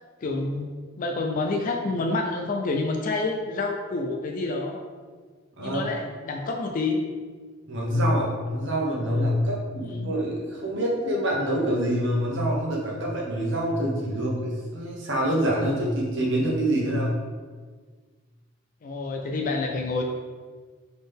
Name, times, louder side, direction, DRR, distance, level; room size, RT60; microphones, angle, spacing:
voice 1, 0.2-0.7 1.0-4.8 5.6-7.0 9.8-10.1 18.8-20.0, left 3 dB, 40° left, 2 dB, 0.4 m, -28 dB
voice 2, 7.7-17.1, equal, 65° right, -3 dB, 1.1 m, -26 dB
4.0 x 3.7 x 3.5 m, 1.5 s
head